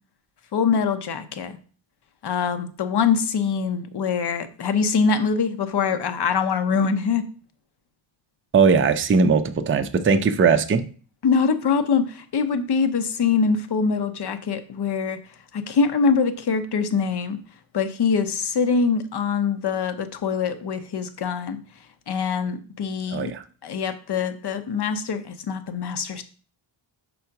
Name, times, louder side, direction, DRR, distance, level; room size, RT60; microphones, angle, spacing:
voice 1, 0.5-1.6 2.2-7.3 11.2-15.2 15.5-17.4 17.7-21.6 22.1-23.3 23.6-26.2, left 5 dB, 55° left, 9 dB, 0.8 m, -23 dB
voice 2, 8.5-10.8 23.1-23.4, right 5 dB, 25° right, 8 dB, 0.4 m, -19 dB
5.6 x 3.9 x 5.7 m, 0.40 s
wide cardioid pair, 165°, 48 cm